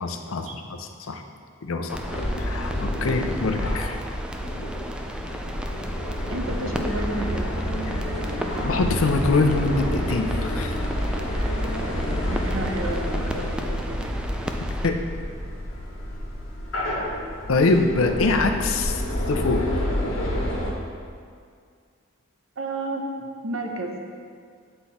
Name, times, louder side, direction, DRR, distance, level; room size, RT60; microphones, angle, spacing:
voice 1, 0.0-1.2 1.6-2.0 2.4-4.0 8.6-10.7 14.8-15.0 17.5-19.0 19.3-19.8, left 3 dB, 85° left, 6 dB, 0.6 m, -24 dB
sound 1, 1.9-20.7, equal, 70° left, 1.3 m, -29 dB
sound 2, 1.9-14.9, right 1 dB, 5° right, 0.3 m, -36 dB
voice 2, 6.3-7.5 11.6-14.2 22.6-23.1 23.4-24.0, right 2 dB, 75° right, 3 dB, 0.8 m, -32 dB
7.7 x 4.4 x 4.1 m, 2.1 s
head